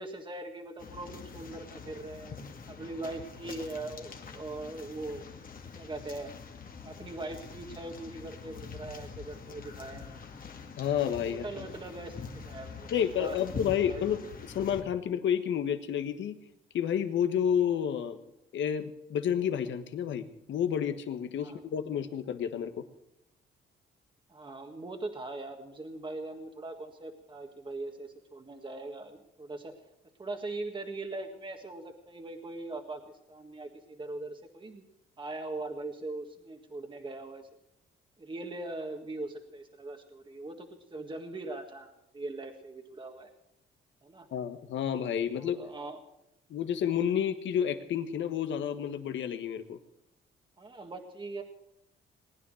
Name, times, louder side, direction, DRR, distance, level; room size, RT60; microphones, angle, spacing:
voice 1, 0.0-2.4 2.7-5.3 5.8-6.4 6.8-10.2 11.3-12.9 13.1-14.0 21.4-21.6 24.3-29.7 30.2-33.0 33.3-34.8 35.2-37.5 38.2-43.3 44.0-44.3 45.4-46.0 50.6-51.4, right 2 dB, 25° right, 4 dB, 1.7 m, -41 dB
sound 1, 0.8-14.8, left 5 dB, 45° left, 2.0 m, -45 dB
voice 2, 10.8-11.7 12.9-14.2 14.5-16.4 16.7-18.2 18.5-22.7 44.3-45.6 46.5-49.8, left 9 dB, 70° left, 9 dB, 1.4 m, -30 dB
20.0 x 10.0 x 6.4 m, 0.83 s
cardioid pair, 90°, 20 cm